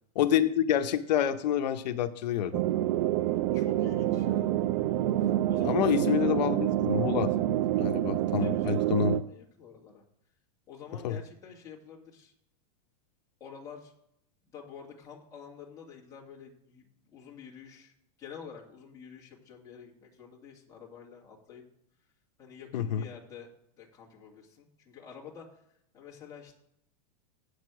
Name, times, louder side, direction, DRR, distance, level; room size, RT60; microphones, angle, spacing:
voice 1, 0.2-2.6 5.6-7.3 7.8-9.2 11.0-11.2 22.7-23.0, left 10 dB, 85° left, 8 dB, 0.7 m, -27 dB
sound 1, 2.5-9.2, right 13 dB, 45° right, 0.4 m, -27 dB
voice 2, 3.5-4.5 5.2-6.3 8.4-10.0 10.7-12.3 13.4-13.9 14.5-16.9 17.1-17.9 18.2-21.6 22.4-23.5 23.7-25.5 25.9-26.5, left 7 dB, 15° left, -4 dB, 2.1 m, -48 dB
8.5 x 6.6 x 6.2 m, 0.75 s
supercardioid pair, 160°, 21 cm